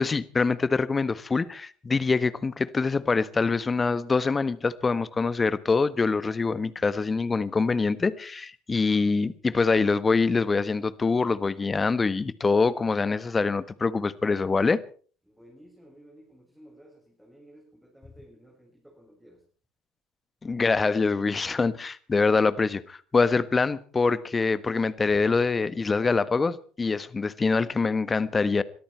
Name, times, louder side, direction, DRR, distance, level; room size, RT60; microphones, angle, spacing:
voice 1, 0.0-14.8 20.4-28.6, left 4 dB, 25° left, 16 dB, 1.3 m, -24 dB
voice 2, 15.2-19.4, equal, 5° right, -1 dB, 7.2 m, -54 dB
23.5 x 13.5 x 4.6 m, 0.41 s
hypercardioid pair, 65°, 0 cm